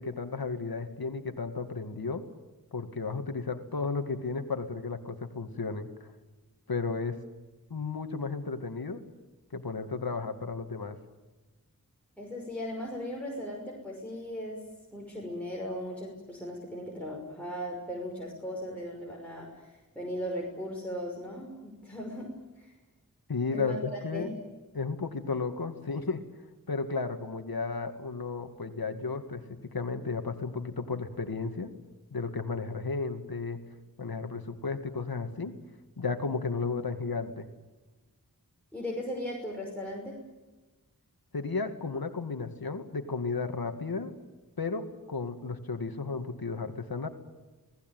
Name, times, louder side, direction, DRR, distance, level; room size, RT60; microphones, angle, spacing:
voice 1, 0.0-2.2 2.7-6.1 6.7-7.2 7.7-9.0 9.5-11.0 23.3-24.3 24.7-26.2 26.7-31.7 32.1-33.6 34.0-35.6 36.0-37.5 41.3-44.1 44.6-47.1, left 4 dB, 90° left, 7 dB, 2.2 m, -33 dB
voice 2, 12.2-14.7 14.9-22.7 23.5-23.8 24.1-24.4 38.7-40.2, equal, 5° left, -3 dB, 5.9 m, -37 dB
28.5 x 19.0 x 9.3 m, 1.2 s
wide cardioid pair, 55°, 35 cm